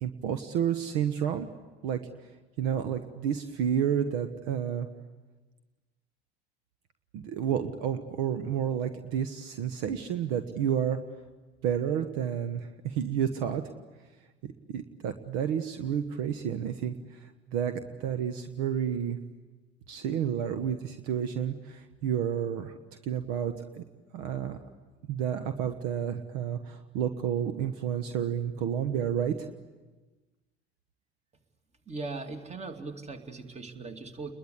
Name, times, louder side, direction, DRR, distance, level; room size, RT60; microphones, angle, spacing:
voice 1, 0.0-1.5 1.8-2.0 2.6-4.9 7.1-11.0 11.6-13.6 14.4-19.2 19.9-22.8 23.0-23.8 24.1-24.6 25.1-29.5, right 9 dB, 55° right, 10 dB, 1.3 m, -30 dB
voice 2, 31.9-34.3, right 3 dB, 20° right, 6 dB, 2.5 m, -39 dB
30.0 x 21.5 x 8.4 m, 1.2 s
figure-of-eight pair, 65°, 31 cm